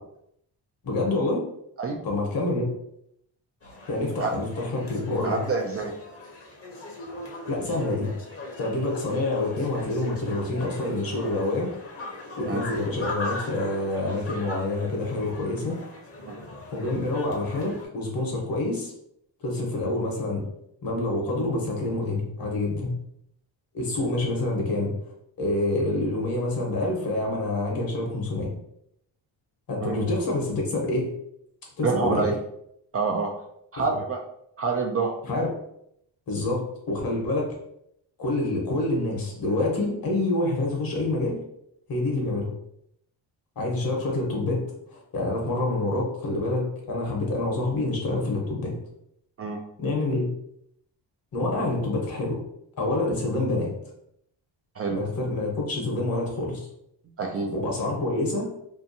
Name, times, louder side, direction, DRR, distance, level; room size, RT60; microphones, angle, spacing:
voice 1, 0.8-1.4 2.0-2.7 3.9-5.4 7.5-8.1 8.6-11.7 12.4-15.8 16.7-18.9 19.4-20.4 20.8-23.0 23.7-24.9 25.4-28.5 29.7-31.1 31.8-32.3 33.8-33.9 35.3-35.5 36.3-37.6 38.2-41.4 41.9-42.5 43.6-44.7 44.9-48.7 49.8-50.3 51.3-52.4 52.8-53.7 54.9-56.7 57.5-58.5, left 2 dB, 50° left, -1 dB, 1.0 m, -27 dB
sound 1, 3.6-17.9, left 2 dB, 30° left, 0.8 m, -39 dB
voice 2, 5.2-5.9 12.4-12.6 16.2-16.3 29.8-30.0 31.8-32.4 32.9-33.3 33.7-34.2 34.6-35.1 49.4-49.6 54.8-55.0 57.2-57.5, right 4 dB, 35° right, 1 dB, 0.4 m, -27 dB
2.8 x 2.3 x 2.6 m, 0.74 s
cardioid pair, 85°, 45 cm